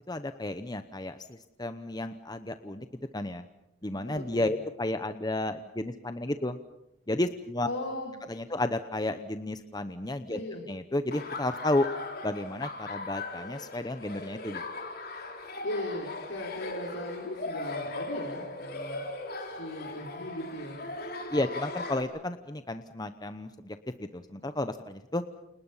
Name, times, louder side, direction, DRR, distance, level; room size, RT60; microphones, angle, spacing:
voice 1, 0.1-2.9 3.1-3.4 3.8-6.6 7.1-7.7 8.3-10.4 10.7-11.9 12.2-14.6 21.3-25.2, left 1 dB, 20° left, 9 dB, 0.9 m, -32 dB
voice 2, 4.0-4.5 7.6-8.1 10.3-10.6 15.6-19.1 19.4-20.8, left 1 dB, 75° left, -3 dB, 5.6 m, -38 dB
Laughter, 11.1-22.0, left 2 dB, 50° left, 4.0 m, -39 dB
29.5 x 29.0 x 5.7 m, 0.84 s
head